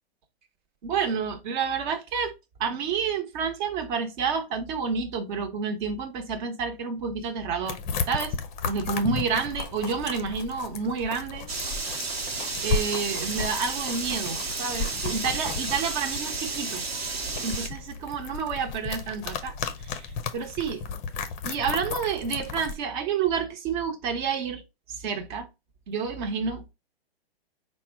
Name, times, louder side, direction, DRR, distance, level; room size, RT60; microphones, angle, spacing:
voice 1, 0.8-2.3 2.6-7.8 8.1-8.4 8.6-11.5 12.6-16.8 17.4-20.8 21.4-24.6 24.9-25.5 25.9-26.7, right 6 dB, 50° right, 1.0 m, -29 dB
sound 1, 7.7-22.8, left 5 dB, 25° left, 0.5 m, -34 dB
sound 2, 11.5-17.7, right 4 dB, 75° right, 1.1 m, -32 dB
4.2 x 2.2 x 4.5 m
hypercardioid pair, 130°, 31 cm